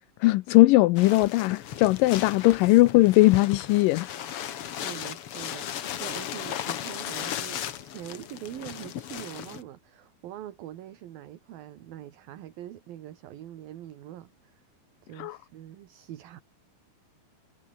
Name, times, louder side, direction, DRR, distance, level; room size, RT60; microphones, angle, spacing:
voice 1, 0.2-4.1 15.2-15.4, left 19 dB, 85° left, 2.0 m, -19 dB
sound 1, 1.0-9.6, left 10 dB, 65° left, 1.4 m, -36 dB
voice 2, 4.6-14.6 15.0-16.4, right 12 dB, 70° right, 3.3 m, -43 dB
omnidirectional pair, 4.5 m